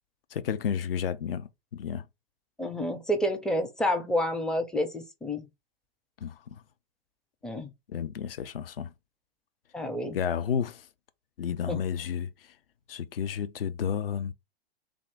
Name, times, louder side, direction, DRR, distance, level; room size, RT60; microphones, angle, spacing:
voice 1, 0.3-2.0 6.2-6.4 7.9-8.9 10.1-10.9 11.4-12.3 12.9-14.3, left 8 dB, 65° left, 0.6 m, -31 dB
voice 2, 2.6-5.5 7.4-7.7 9.7-10.2 11.7-11.8, equal, ahead, 0.4 m, -29 dB
3.5 x 2.5 x 3.5 m
figure-of-eight pair, 105°, 31 cm